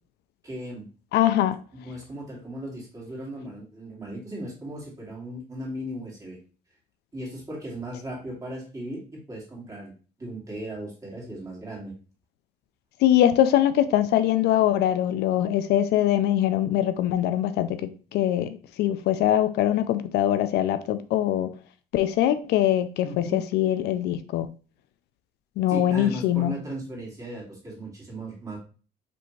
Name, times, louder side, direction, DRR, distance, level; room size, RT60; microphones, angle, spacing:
voice 1, 0.4-0.9 1.8-6.4 7.1-9.9 10.2-11.9 23.0-23.4 25.7-28.6, right 1 dB, 20° right, 2.4 m, -37 dB
voice 2, 1.1-1.6 13.0-21.5 21.9-24.5 25.6-26.6, left 12 dB, 75° left, 0.5 m, -23 dB
5.1 x 3.3 x 3.1 m
cardioid pair, 110°, 17 cm